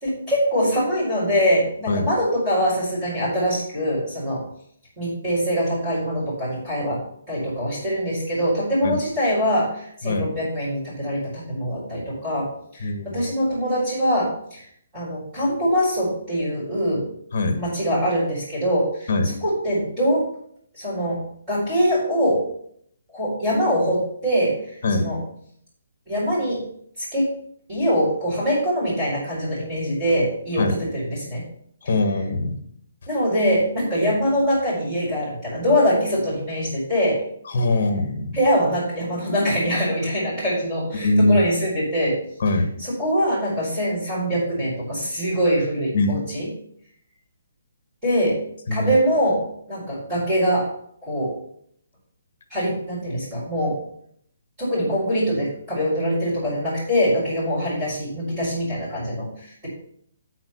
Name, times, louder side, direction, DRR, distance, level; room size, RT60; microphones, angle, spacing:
voice 1, 0.0-4.4 5.0-7.0 7.3-14.6 14.9-17.1 17.6-19.1 19.4-20.3 20.7-21.2 21.5-22.5 23.1-25.2 26.1-26.6 27.0-27.3 27.7-31.4 33.1-37.2 38.3-42.2 42.8-46.5 48.0-48.4 48.7-49.4 49.7-50.7 51.0-51.4 52.5-53.8 54.6-59.7, equal, 15° right, -10 dB, 4.7 m, -23 dB
voice 2, 12.8-13.2 17.3-17.6 19.1-19.3 24.8-25.1 30.6-30.7 31.8-32.6 37.5-38.3 41.0-41.4 42.4-42.7 45.9-46.2 48.7-48.9, left 2 dB, 40° left, 7 dB, 1.3 m, -22 dB
9.0 x 4.6 x 7.0 m, 0.67 s
hypercardioid pair, 180°, 0 cm